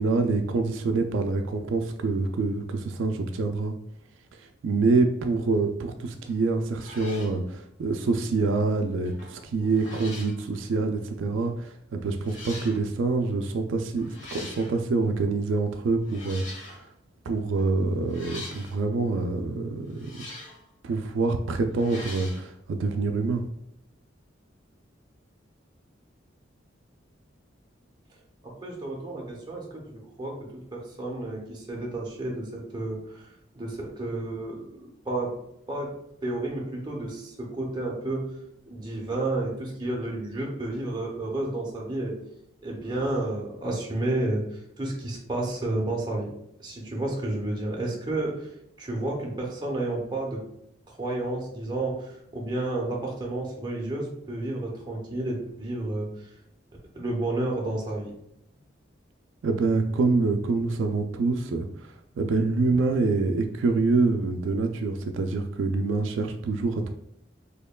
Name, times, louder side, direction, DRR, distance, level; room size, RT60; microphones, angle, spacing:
voice 1, 0.0-3.7 4.4-16.9 17.3-20.1 20.8-23.4 59.4-66.9, right 3 dB, 80° right, 6 dB, 0.3 m, -26 dB
sound 1, 6.3-6.4 6.8-7.4 9.0-9.4 9.7-10.4 11.4-11.5 12.2-12.8 14.0-14.8 16.0-16.9 18.1-18.8 19.9-20.6 21.7-22.4, left 2 dB, 85° left, 1.3 m, -42 dB
voice 2, 9.3-9.9 28.4-33.3 33.5-35.4 35.7-35.9 36.2-38.3 38.6-42.2 42.6-46.3 46.6-48.5 48.8-50.4 50.9-56.3 56.9-58.1, right 2 dB, 20° right, -2 dB, 0.7 m, -31 dB
4.3 x 2.9 x 2.3 m, 0.77 s
head